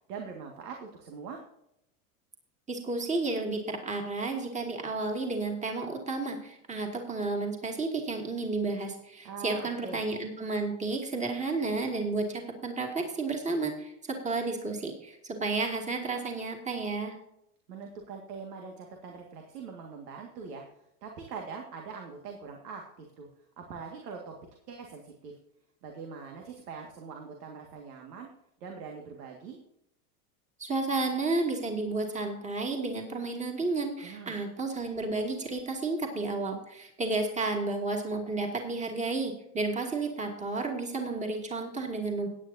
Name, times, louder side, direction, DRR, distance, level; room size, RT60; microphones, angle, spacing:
voice 1, 0.1-1.4 9.2-10.0 17.7-20.7 21.0-23.3 23.6-24.3 24.7-25.4 25.8-28.3 28.6-29.6 34.0-34.4, right 5 dB, 85° right, 2 dB, 2.0 m, -42 dB
voice 2, 2.7-17.2 30.6-42.3, right 3 dB, 15° right, 1 dB, 2.4 m, -32 dB
16.5 x 9.6 x 2.7 m, 0.81 s
supercardioid pair, 115°, 46 cm